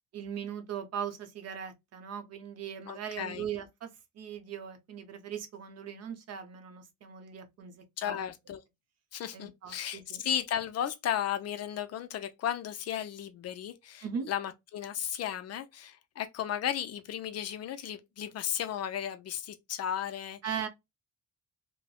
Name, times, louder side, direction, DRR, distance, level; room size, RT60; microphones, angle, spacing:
voice 1, 0.1-3.9 4.1-8.2 9.3-10.2 14.0-14.3 20.4-20.7, right 8 dB, 50° right, 0.6 m, -39 dB
voice 2, 2.9-3.5 8.0-8.6 9.1-20.7, left 10 dB, 50° left, 0.4 m, -35 dB
3.1 x 2.0 x 2.2 m
cardioid pair, 160°, 33 cm